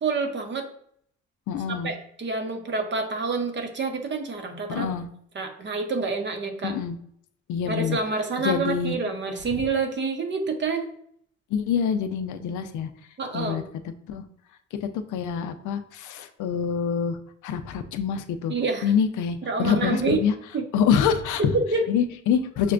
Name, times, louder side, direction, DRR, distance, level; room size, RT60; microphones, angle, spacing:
voice 1, 0.0-0.7 1.7-4.9 5.3-6.7 7.7-10.9 13.2-13.6 18.5-18.9 19.4-20.2 20.5-20.7 21.5-21.8, right 4 dB, 40° right, 5 dB, 0.7 m, -27 dB
voice 2, 1.5-1.9 4.7-5.1 6.6-7.0 7.5-8.0 8.4-9.0 11.5-12.9 13.3-13.6 14.1-14.2 14.8-18.5 18.8-20.3 20.7-21.6 21.9-22.7, left 7 dB, 80° left, 8 dB, 0.5 m, -25 dB
5.8 x 2.2 x 2.4 m, 0.66 s
cardioid pair, 90°, 30 cm